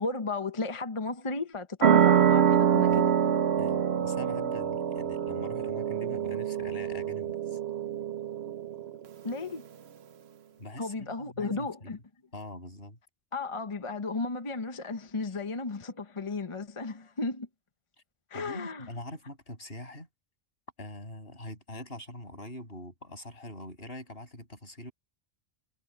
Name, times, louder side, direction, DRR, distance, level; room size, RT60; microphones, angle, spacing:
voice 1, 0.0-3.1 9.2-9.6 10.8-12.0 13.3-17.5 18.3-18.9, left 3 dB, 30° left, 0.9 m, -34 dB
sound 1, 1.8-9.0, right 8 dB, 80° right, 1.1 m, -25 dB
voice 2, 3.6-7.6 10.6-12.0 12.3-13.0 15.2-15.4 18.3-20.1 20.8-24.9, left 1 dB, 70° left, 7.5 m, -43 dB
omnidirectional pair, 1.0 m